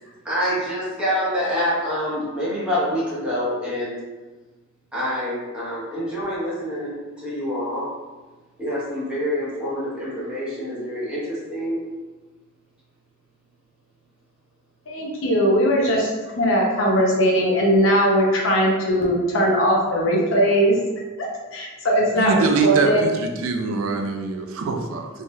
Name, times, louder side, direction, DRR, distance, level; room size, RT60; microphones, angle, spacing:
voice 1, 0.0-4.0 4.9-7.9 8.6-11.8, equal, 5° right, -10 dB, 1.0 m, -26 dB
voice 2, 14.9-20.8 21.2-23.1, equal, 65° left, -2 dB, 0.7 m, -20 dB
voice 3, 22.2-25.1, right 4 dB, 80° right, 4 dB, 0.4 m, -23 dB
3.1 x 2.7 x 2.3 m, 1.2 s
head